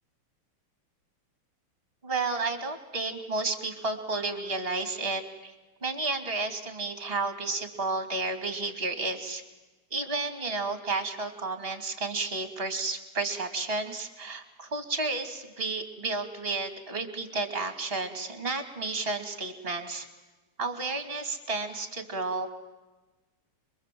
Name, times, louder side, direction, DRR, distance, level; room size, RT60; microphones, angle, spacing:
voice 1, 2.0-5.5 5.8-9.4 9.9-20.1 20.6-22.5, right 3 dB, 25° right, 7 dB, 2.8 m, -32 dB
27.5 x 22.5 x 7.8 m, 1.2 s
omnidirectional pair, 2.4 m